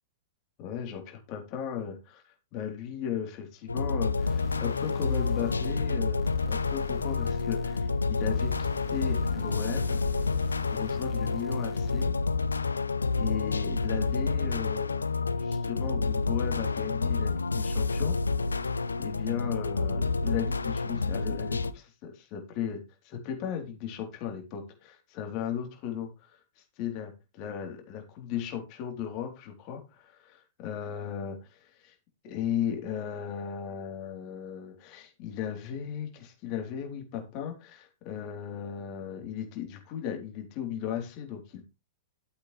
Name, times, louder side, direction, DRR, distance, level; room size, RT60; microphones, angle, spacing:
voice 1, 0.6-10.0 10.7-12.1 13.2-15.0 15.4-18.2 19.0-31.9 32.2-41.6, left 8 dB, 40° left, 3 dB, 3.7 m, -36 dB
sound 1, 3.7-21.7, left 4 dB, 80° left, 0.7 m, -29 dB
sound 2, 4.2-12.2, left 5 dB, 20° left, 1.7 m, -45 dB
13.0 x 8.2 x 3.4 m, 0.26 s
figure-of-eight pair, 105°, 0 cm